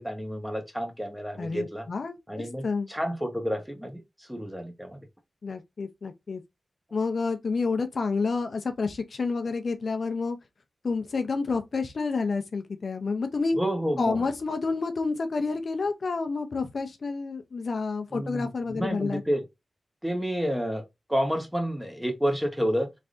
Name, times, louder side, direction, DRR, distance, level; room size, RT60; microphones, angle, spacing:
voice 1, 0.0-1.8 2.3-5.0 13.6-14.2 18.1-19.4 20.0-20.8 21.1-23.0, equal, 5° right, 1.2 m, -30 dB
voice 2, 1.4-2.9 5.4-6.4 6.9-10.4 10.8-13.6 14.0-19.2, left 4 dB, 65° left, 0.6 m, -29 dB
3.5 x 3.2 x 2.4 m
wide cardioid pair, 80°, 0 cm